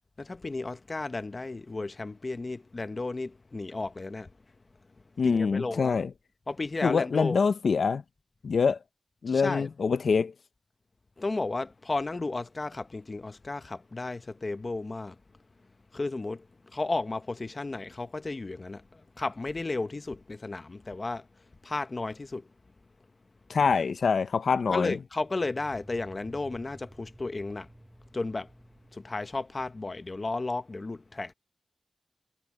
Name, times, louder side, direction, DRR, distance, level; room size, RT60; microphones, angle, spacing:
voice 1, 0.2-4.3 5.2-6.0 6.5-7.4 9.3-9.7 11.2-15.1 15.9-16.4 16.7-21.3 21.6-22.5 24.7-27.7 28.1-28.5 28.9-31.3, left 3 dB, 35° left, 0.9 m, -33 dB
voice 2, 5.2-6.1 6.8-8.0 8.4-8.8 9.2-10.3 23.5-25.0, left 5 dB, 70° left, 0.6 m, -25 dB
sound 1, 25.2-29.7, right 1 dB, 10° right, 4.2 m, -53 dB
wide cardioid pair, 120°, 0 cm